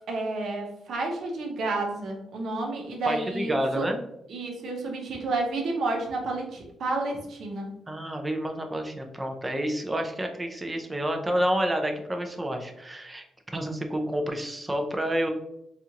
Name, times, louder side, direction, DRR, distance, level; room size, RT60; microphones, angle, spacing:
voice 1, 0.1-3.9 4.3-7.7, right 2 dB, 65° right, 1 dB, 0.8 m, -30 dB
voice 2, 3.1-4.0 7.9-13.2 13.5-15.3, equal, 15° right, 4 dB, 0.5 m, -29 dB
4.2 x 2.5 x 2.8 m, 0.80 s
cardioid pair, 130°, 0 cm